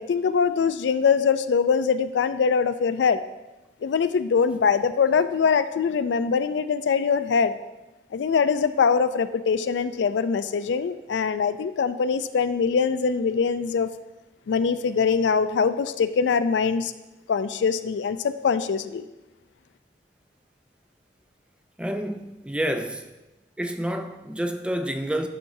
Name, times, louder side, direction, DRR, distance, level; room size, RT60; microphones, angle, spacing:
voice 1, 0.0-3.2 3.8-7.6 8.1-13.9 14.5-16.9 17.3-19.0, left 6 dB, 90° left, 0.4 m, -23 dB
voice 2, 21.8-23.1 23.6-25.3, right 1 dB, 5° right, 0.3 m, -29 dB
9.8 x 5.8 x 2.7 m
head